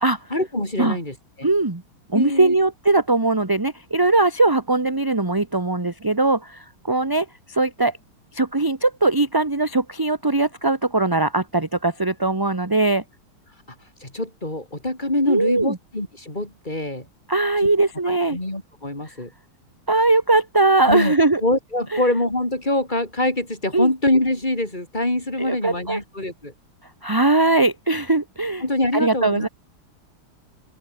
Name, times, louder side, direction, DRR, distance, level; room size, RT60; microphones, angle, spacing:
voice 1, 0.3-1.5 2.1-2.6 14.0-17.1 18.3-19.3 20.9-21.1 21.4-26.5 28.6-29.5, left 1 dB, 20° left, 4.9 m, -24 dB
voice 2, 1.4-1.8 2.1-8.0 8.3-13.0 15.2-15.8 17.3-18.4 19.1-19.2 19.9-21.4 21.9-22.0 23.7-23.9 25.4-26.0 27.0-28.6 28.9-29.5, right 2 dB, 15° right, 1.1 m, -20 dB
open air
omnidirectional pair, 2.3 m